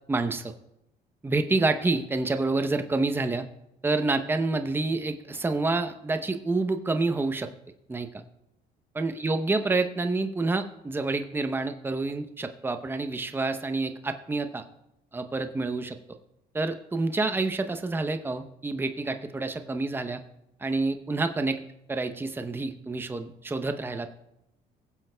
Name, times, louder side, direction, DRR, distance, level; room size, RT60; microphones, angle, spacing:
voice 1, 0.1-0.5 1.2-3.5 3.8-7.5 7.9-8.2 9.0-14.6 15.1-16.0 16.5-20.2 20.6-21.6 21.9-24.2, right 3 dB, 15° right, 8 dB, 0.7 m, -28 dB
22.5 x 7.6 x 2.2 m, 0.86 s
cardioid pair, 110°, 17 cm